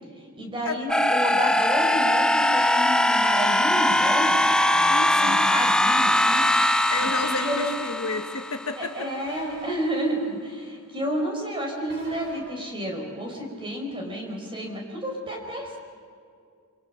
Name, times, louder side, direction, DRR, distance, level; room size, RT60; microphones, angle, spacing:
voice 1, 0.3-6.4 7.0-7.7 8.8-15.8, right 1 dB, 25° right, 0 dB, 5.2 m, -31 dB
sound 1, 0.9-8.8, left 1 dB, 5° left, 0.5 m, -21 dB
sound 2, 4.4-4.8 6.9-7.3 9.3-9.7 11.9-12.4, right 1 dB, 55° right, 7.4 m, -41 dB
voice 2, 4.9-5.5 6.9-9.1, left 3 dB, 65° left, 5 dB, 1.5 m, -31 dB
29.5 x 25.0 x 5.9 m, 2.3 s
head